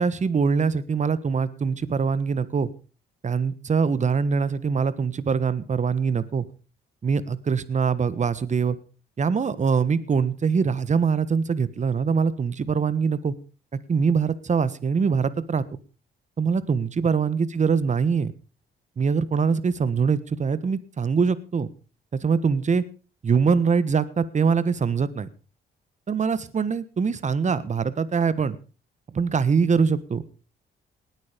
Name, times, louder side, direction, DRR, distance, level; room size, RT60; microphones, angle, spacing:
voice 1, 0.0-2.7 3.2-6.4 7.0-8.8 9.2-13.3 13.9-15.6 16.4-18.3 19.0-21.7 22.2-22.8 23.2-25.3 26.1-28.6 29.1-30.2, right 5 dB, 35° right, 16 dB, 1.4 m, -23 dB
19.5 x 9.1 x 5.2 m, 0.35 s
cardioid pair, 90°, 20 cm